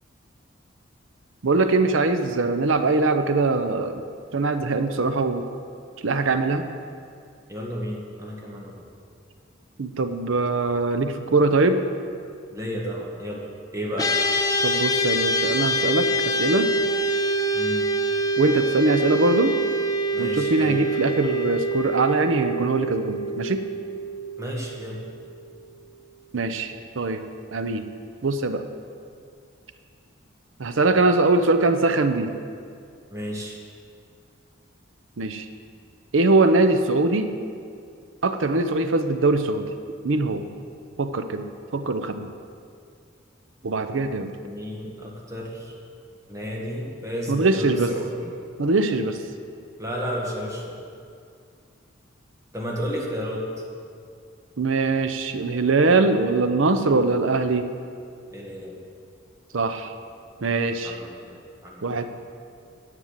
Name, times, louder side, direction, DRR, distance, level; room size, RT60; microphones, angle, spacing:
voice 1, 1.4-4.0 4.3-5.4 6.0-6.7 9.8-11.8 14.6-16.7 18.4-19.6 20.2-23.6 26.3-27.2 27.5-27.9 28.2-28.6 30.6-32.3 35.2-35.5 36.1-37.3 38.2-39.7 40.0-40.5 41.0-41.5 41.7-42.3 43.6-44.3 47.3-47.9 48.6-49.2 54.6-57.7 59.5-59.9 60.4-61.0 61.8-62.1, right 3 dB, 75° right, 9 dB, 0.7 m, -22 dB
voice 2, 7.5-8.9 12.5-13.5 13.7-14.1 17.5-17.9 20.1-20.8 24.4-25.0 33.1-33.6 44.4-45.8 46.3-48.3 49.8-50.9 52.5-53.4 58.3-58.8 60.8-62.0, equal, 15° right, -3 dB, 1.8 m, -32 dB
sound 1, 14.0-25.4, right 1 dB, 20° left, 0.7 m, -25 dB
10.0 x 7.9 x 7.4 m, 2.3 s
head